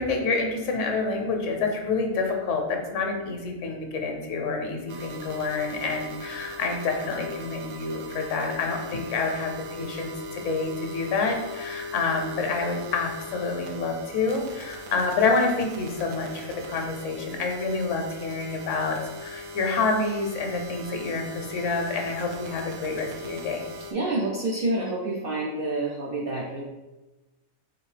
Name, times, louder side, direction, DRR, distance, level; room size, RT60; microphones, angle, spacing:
voice 1, 0.0-23.7, left 3 dB, 70° left, 3 dB, 0.9 m, -28 dB
sound 1, 4.9-23.9, left 1 dB, 85° right, 1.0 m, -40 dB
voice 2, 23.9-26.6, right 2 dB, 65° right, -3 dB, 0.5 m, -28 dB
4.1 x 2.6 x 3.2 m, 1.1 s
omnidirectional pair, 1.4 m